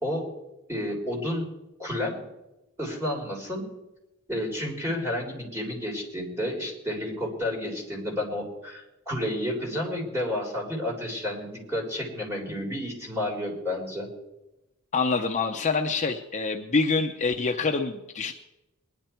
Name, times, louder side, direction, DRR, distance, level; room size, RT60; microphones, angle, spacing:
voice 1, 0.7-1.5 1.8-2.2 2.8-3.7 4.3-14.1, left 1 dB, 10° right, -2 dB, 3.6 m, -31 dB
voice 2, 14.9-18.3, left 4 dB, 35° left, 3 dB, 0.7 m, -26 dB
21.0 x 11.0 x 4.5 m, 0.98 s
head